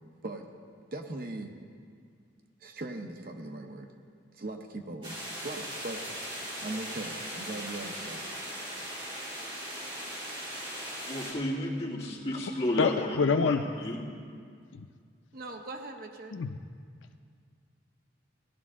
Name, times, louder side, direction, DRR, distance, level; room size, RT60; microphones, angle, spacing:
voice 1, 0.9-1.6 2.6-3.9 4.3-8.2 15.3-16.4, right 2 dB, 50° right, 4 dB, 0.8 m, -40 dB
sound 1, 5.0-11.3, equal, 30° right, 3.0 m, -39 dB
voice 2, 11.1-13.2 13.4-14.0, left 1 dB, 30° left, -5 dB, 2.2 m, -32 dB
voice 3, 12.8-13.6 14.7-14.9 16.3-16.5, left 5 dB, 85° left, 9 dB, 0.5 m, -26 dB
17.0 x 11.5 x 3.7 m, 2.2 s
head